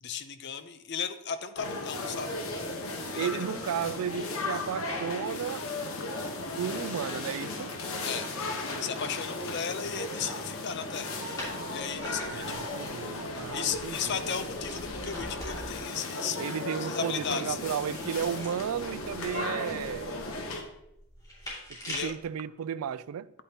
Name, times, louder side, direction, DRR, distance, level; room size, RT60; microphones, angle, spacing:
voice 1, 0.0-2.4 3.1-3.3 8.0-8.3 8.8-11.1 11.7-12.7 13.5-16.4 16.8-17.6 21.9-22.1, left 7 dB, 50° left, 0.6 m, -35 dB
sound 1, 1.6-20.6, left 2 dB, 75° left, 1.2 m, -36 dB
voice 2, 3.2-5.7 6.6-7.7 12.3-14.1 16.4-20.2 21.8-23.3, right 8 dB, 85° right, 0.4 m, -34 dB
sound 2, 11.4-15.9 17.3-22.2, equal, 15° left, 2.5 m, -44 dB
9.8 x 8.6 x 2.9 m
head